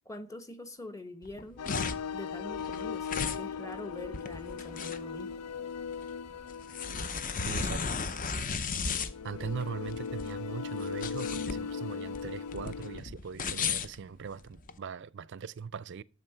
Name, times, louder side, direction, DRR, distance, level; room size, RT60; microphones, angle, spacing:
voice 1, 0.0-1.7 2.1-5.5, left 1 dB, 15° left, 1.0 m, -44 dB
sound 1, 1.2-14.8, left 5 dB, 35° left, 0.7 m, -35 dB
sound 2, 1.6-13.0, left 6 dB, 90° left, 0.5 m, -39 dB
voice 2, 7.4-8.0 9.2-16.0, right 6 dB, 50° right, 0.4 m, -40 dB
11.0 x 7.7 x 5.6 m
head